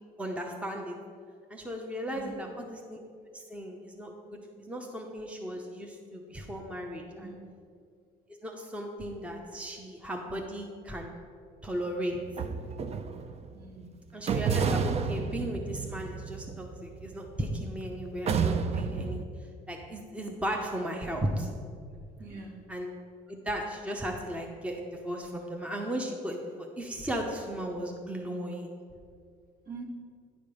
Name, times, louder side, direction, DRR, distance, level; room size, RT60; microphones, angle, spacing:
voice 1, 0.2-0.9 1.5-3.0 3.3-7.4 8.4-11.1 11.6-12.1 14.1-19.2 19.7-21.5 22.7-22.9 23.3-28.7, equal, 5° right, 2 dB, 0.8 m, -36 dB
voice 2, 2.1-2.5 7.2-7.5 13.5-14.0 22.2-22.7 29.7-29.8, right 4 dB, 60° right, -1 dB, 1.9 m, -44 dB
sound 1, 12.1-13.5 14.3-17.7 18.3-19.2, right 6 dB, 40° right, 0.5 m, -31 dB
9.9 x 5.2 x 5.1 m, 2.2 s
cardioid pair, 110°, 17 cm